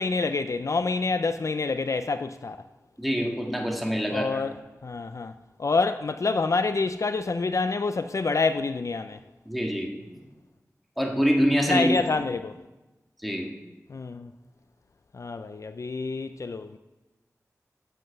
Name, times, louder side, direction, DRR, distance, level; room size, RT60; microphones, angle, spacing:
voice 1, 0.0-2.6 4.1-4.6 4.8-5.3 5.6-9.2 11.7-12.5 13.9-14.3 15.1-16.8, left 4 dB, 60° left, 0.3 m, -27 dB
voice 2, 3.0-4.5 9.5-9.9 11.0-12.2 13.2-13.5, equal, ahead, 1.7 m, -25 dB
7.7 x 7.4 x 6.6 m
wide cardioid pair, 65°, 6 cm